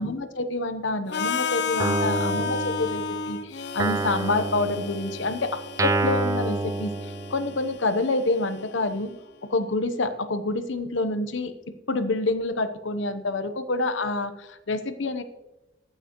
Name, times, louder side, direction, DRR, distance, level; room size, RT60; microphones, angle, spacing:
voice 1, 0.0-9.1 9.5-15.2, left 2 dB, 75° left, 9 dB, 0.9 m, -27 dB
Harmonica, 1.1-9.0, left 4 dB, 60° left, 0.5 m, -33 dB
Guitar, 1.8-3.3 3.8-7.7, right 2 dB, 15° right, 0.3 m, -28 dB
21.5 x 8.8 x 3.1 m, 1.0 s
head